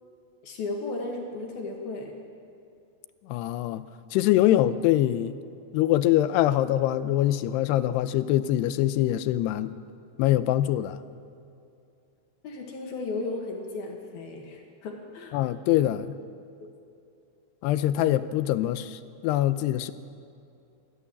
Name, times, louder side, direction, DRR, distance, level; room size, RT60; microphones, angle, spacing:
voice 1, 0.4-2.2 12.4-15.4 16.6-16.7, left 3 dB, 65° left, 1 dB, 3.7 m, -35 dB
voice 2, 3.3-3.8 4.1-5.4 5.7-9.8 10.2-11.0 15.3-16.1 17.6-19.9, left 13 dB, 80° left, 13 dB, 2.7 m, -24 dB
27.0 x 11.0 x 9.9 m, 2.5 s
omnidirectional pair, 4.9 m